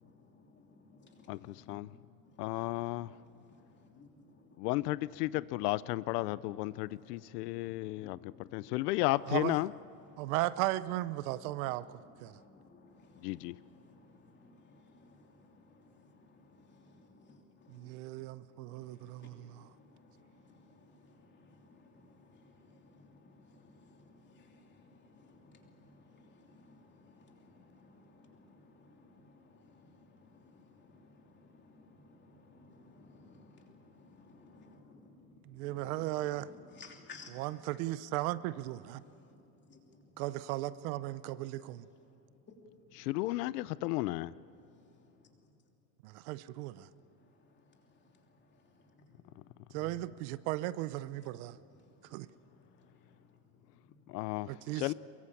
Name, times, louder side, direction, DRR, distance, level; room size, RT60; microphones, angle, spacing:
voice 1, 0.2-5.3 5.5-9.0 9.8-10.3 11.1-37.8 38.2-40.3 41.6-43.2 44.4-45.5 46.6-49.5 51.0-54.2, left 3 dB, 25° left, 3.1 m, -60 dB
voice 2, 1.3-1.9 2.4-3.1 4.6-9.7 13.2-13.6 43.0-44.3 54.1-54.9, left 18 dB, 80° left, 0.7 m, -34 dB
voice 3, 10.2-12.3 17.7-19.6 35.5-36.5 37.4-39.0 40.2-41.8 46.0-46.9 49.7-51.6 52.1-52.3 54.5-54.9, right 16 dB, 65° right, 0.8 m, -36 dB
23.5 x 22.5 x 8.6 m
supercardioid pair, 155°, 46 cm